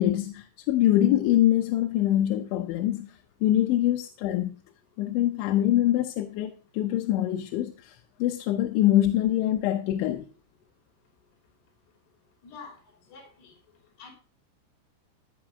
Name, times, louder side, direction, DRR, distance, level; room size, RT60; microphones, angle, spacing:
voice 1, 0.0-3.1 3.4-4.5 5.0-10.3, left 13 dB, 80° left, 3.1 m, -24 dB
voice 2, 12.4-12.8 13.1-13.5 14.0-14.1, left 5 dB, 60° left, 4.9 m, -46 dB
15.0 x 5.9 x 5.2 m
omnidirectional pair, 5.5 m